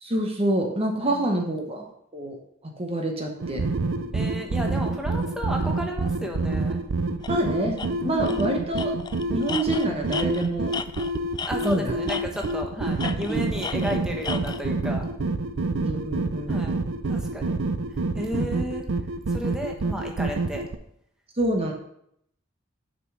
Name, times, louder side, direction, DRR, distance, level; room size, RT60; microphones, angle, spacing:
voice 1, 0.0-1.8 2.1-2.4 2.8-3.6 7.3-8.9 9.3-10.7 11.6-11.9 13.0-13.4 13.8-13.9 15.7-16.6 18.3-18.6 21.4-21.7, right 1 dB, 30° right, 3 dB, 1.0 m, -27 dB
sound 1, 3.4-20.8, right 3 dB, 80° right, 0.6 m, -28 dB
voice 2, 4.1-6.8 8.0-8.5 11.5-15.0 16.5-16.7 17.1-17.5 18.1-18.8 19.3-20.6, equal, 5° right, 1 dB, 1.1 m, -33 dB
Tools, 7.2-7.4 7.8-7.9 8.3-8.5 8.8-11.8 12.1-12.6 13.0-14.6, left 6 dB, 20° left, 0.3 m, -34 dB
6.7 x 5.3 x 6.1 m, 0.73 s
head